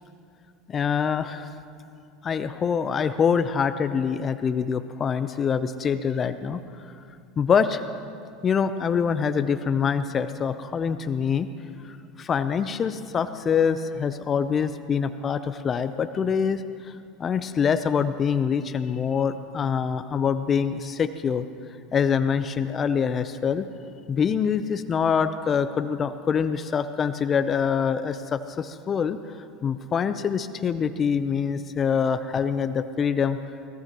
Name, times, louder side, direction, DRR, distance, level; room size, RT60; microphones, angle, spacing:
voice 1, 0.7-1.5 2.2-6.6 7.4-7.8 8.4-11.5 11.8-16.9 17.2-21.4 21.9-23.7 24.1-29.2 29.6-33.4, left 6 dB, 35° left, 11 dB, 0.7 m, -25 dB
24.0 x 19.0 x 3.1 m, 2.4 s
hypercardioid pair, 95°, 0 cm